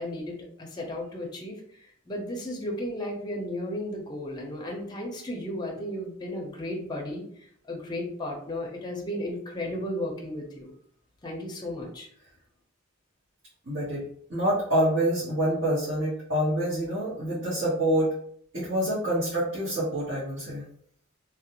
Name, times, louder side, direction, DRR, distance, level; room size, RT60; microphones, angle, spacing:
voice 1, 0.0-1.6 2.1-7.2 7.7-10.7 11.2-12.1, left 1 dB, 20° left, 0 dB, 0.5 m, -34 dB
voice 2, 13.7-14.0 14.3-18.1 18.5-20.6, right 1 dB, 60° right, -10 dB, 1.1 m, -26 dB
2.5 x 2.1 x 2.8 m, 0.63 s
head